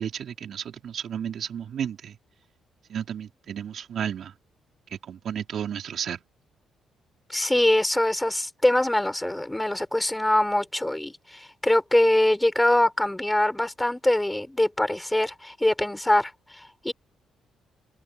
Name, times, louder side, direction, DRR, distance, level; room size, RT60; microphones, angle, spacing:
voice 1, 0.0-2.2 2.9-4.3 4.9-6.2, right 8 dB, 60° right, 5.0 m, -32 dB
voice 2, 7.3-16.9, left 1 dB, 10° left, 5.0 m, -23 dB
open air
cardioid pair, 90°, 0 cm